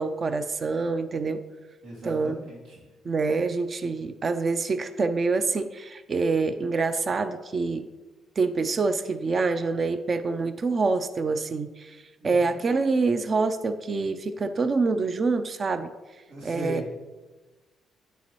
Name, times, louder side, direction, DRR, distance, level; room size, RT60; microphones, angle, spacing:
voice 1, 0.0-1.4 2.0-2.4 3.0-7.9 8.4-15.9 16.4-16.8, right 4 dB, 40° right, 9 dB, 0.5 m, -26 dB
voice 2, 1.8-2.9 12.2-12.6 16.3-16.9, equal, 90° right, -4 dB, 2.2 m, -38 dB
9.8 x 6.9 x 3.1 m, 1.2 s
cardioid pair, 90°, 0 cm